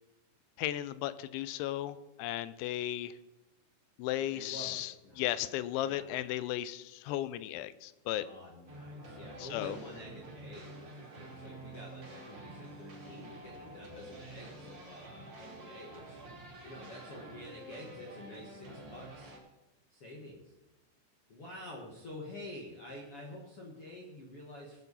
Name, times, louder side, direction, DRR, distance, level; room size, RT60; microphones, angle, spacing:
voice 1, 0.6-3.2 4.0-8.3 9.4-9.8, left 13 dB, 85° left, 15 dB, 2.9 m, -35 dB
voice 2, 4.3-5.2 5.8-6.0 8.2-16.2 16.6-19.3 19.9-20.5 21.3-24.8, left 1 dB, 65° left, -2 dB, 1.4 m, -48 dB
sound 1, 8.7-19.4, right 1 dB, 30° right, 2.6 m, -49 dB
19.0 x 8.2 x 4.1 m, 1.0 s
omnidirectional pair, 5.4 m